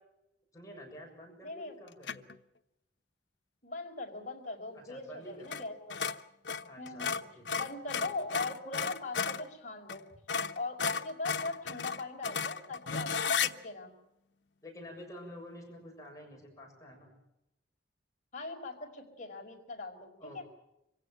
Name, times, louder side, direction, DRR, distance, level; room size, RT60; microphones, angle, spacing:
voice 1, 0.5-2.2 4.7-5.5 6.6-7.5 14.6-17.1 20.2-20.4, equal, 20° left, 0 dB, 7.0 m, -49 dB
voice 2, 1.4-1.8 3.6-6.0 6.8-7.2 7.5-10.0 10.5-13.9 18.3-20.1 20.3-20.4, left 3 dB, 45° left, 2 dB, 5.2 m, -40 dB
sound 1, 2.0-2.4 5.4-5.6 5.9-9.5 9.9-10.0 10.3-13.5, left 6 dB, 85° left, 1.0 m, -33 dB
26.0 x 16.5 x 9.1 m, 0.88 s
head